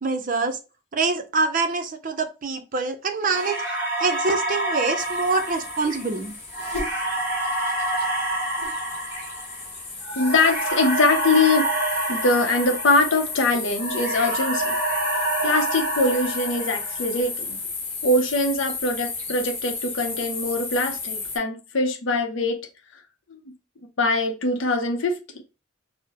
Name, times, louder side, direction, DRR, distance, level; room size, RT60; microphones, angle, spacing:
voice 1, 0.0-0.6 0.9-3.6 4.0-6.3, right 3 dB, 45° right, 0.5 m, -25 dB
sound 1, 3.2-13.4 13.8-17.2, right 1 dB, 10° right, 2.0 m, -28 dB
sound 2, 5.0-21.4, left 4 dB, 35° left, 1.0 m, -33 dB
voice 2, 10.2-11.6 12.1-14.7 15.4-17.6 18.0-22.6 23.3-23.4 24.0-25.2, left 2 dB, 75° left, 0.6 m, -22 dB
4.6 x 2.0 x 2.9 m
head